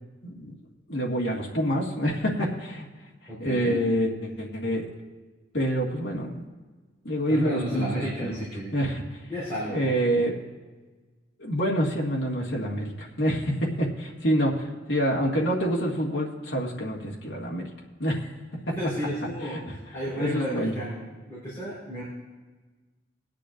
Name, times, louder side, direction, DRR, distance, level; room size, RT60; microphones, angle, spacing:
voice 1, 0.2-0.5 0.9-2.9 3.4-4.9 5.5-6.4 7.0-7.9 8.2-8.4 8.7-9.2 9.7-10.3 11.4-17.7 18.0-18.2 18.7-18.8 19.4-19.6 20.2-20.7, equal, 65° left, -3 dB, 1.7 m, -27 dB
voice 2, 3.3-3.8 7.3-8.8 9.3-9.8 18.8-22.0, equal, 15° left, -10 dB, 4.0 m, -32 dB
21.0 x 10.5 x 2.5 m, 1.3 s
head